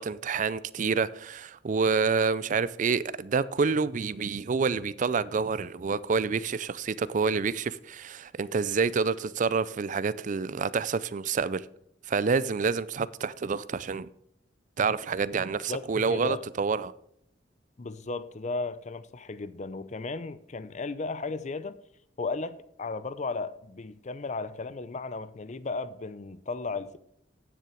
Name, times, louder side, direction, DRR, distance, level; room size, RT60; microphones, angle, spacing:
voice 1, 0.0-11.7 12.1-14.1 14.8-16.9, right 5 dB, 45° right, 0.4 m, -28 dB
voice 2, 15.7-16.4 17.8-21.8 22.2-27.0, left 3 dB, 40° left, 0.6 m, -35 dB
9.5 x 7.6 x 5.0 m
head